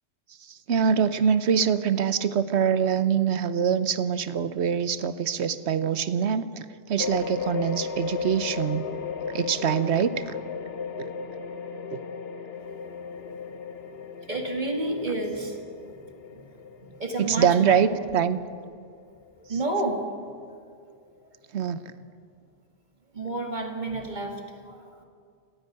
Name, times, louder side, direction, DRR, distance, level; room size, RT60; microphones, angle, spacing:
voice 1, 0.5-6.5 6.9-8.9 9.3-10.1 11.0-11.1 11.9-12.0 17.2-18.4 21.5-21.8, right 7 dB, 65° right, 13 dB, 1.1 m, -24 dB
sound 1, 7.0-19.8, left 6 dB, 60° left, 1.2 m, -35 dB
voice 2, 14.3-16.5 16.8-18.1 19.5-20.1 20.4-20.6 23.1-25.0, right 2 dB, 40° right, 2 dB, 2.4 m, -31 dB
29.5 x 10.0 x 9.5 m, 2.3 s
omnidirectional pair, 1.2 m